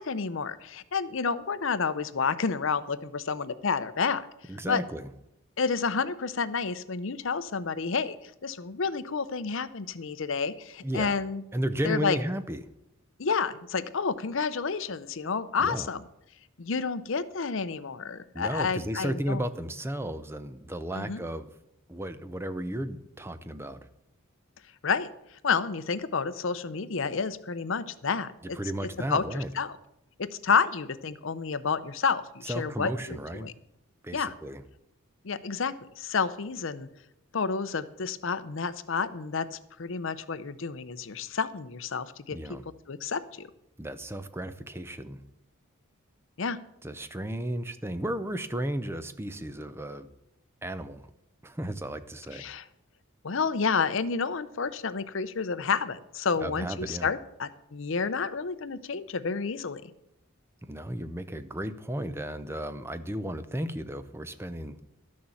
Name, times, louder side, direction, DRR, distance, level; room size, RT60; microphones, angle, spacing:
voice 1, 0.0-4.3 4.7-4.8 5.6-8.2 8.4-11.4 11.8-12.2 13.2-16.0 16.6-19.4 20.9-21.2 24.8-25.1 25.4-28.3 28.8-29.7 30.2-33.5 34.1-34.3 35.2-36.9 37.3-42.4 42.9-43.5 46.4-46.6 52.3-52.6 53.2-59.9, left 5 dB, 60° left, 14 dB, 0.6 m, -30 dB
voice 2, 4.5-5.1 10.8-11.2 11.5-12.6 15.6-15.9 18.3-21.5 21.9-23.8 28.5-29.5 32.4-33.5 34.0-34.6 42.3-42.6 43.8-45.2 46.8-50.1 50.6-51.0 51.4-52.5 56.4-57.1 60.6-64.8, right 1 dB, 10° right, 11 dB, 0.5 m, -34 dB
12.5 x 6.5 x 7.2 m, 0.82 s
head